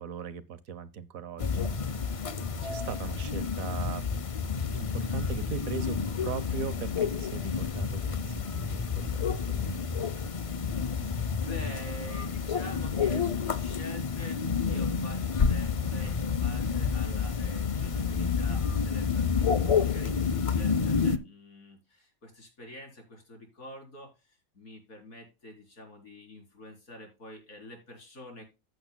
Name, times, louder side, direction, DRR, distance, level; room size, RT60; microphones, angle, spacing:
voice 1, 0.0-4.2 4.7-10.1, right 6 dB, 75° right, 1.3 m, -40 dB
sound 1, 1.4-21.2, left 6 dB, 50° left, 0.4 m, -29 dB
voice 2, 11.4-28.4, left 1 dB, 75° left, 4.3 m, -47 dB
15.0 x 7.8 x 2.2 m
omnidirectional pair, 1.5 m